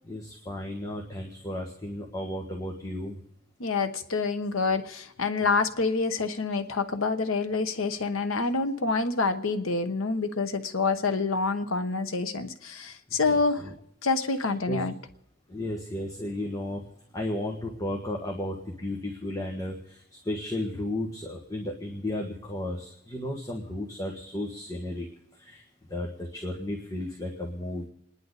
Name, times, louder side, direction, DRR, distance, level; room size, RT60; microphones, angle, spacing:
voice 1, 0.1-3.2 13.1-13.7 14.4-14.8 15.5-16.8 17.1-25.0 25.4-25.6 25.9-27.8, left 1 dB, 20° left, -1 dB, 1.7 m, -34 dB
voice 2, 3.6-13.6 14.0-14.9, left 4 dB, 85° left, 9 dB, 1.1 m, -27 dB
29.0 x 10.5 x 4.1 m, 0.79 s
head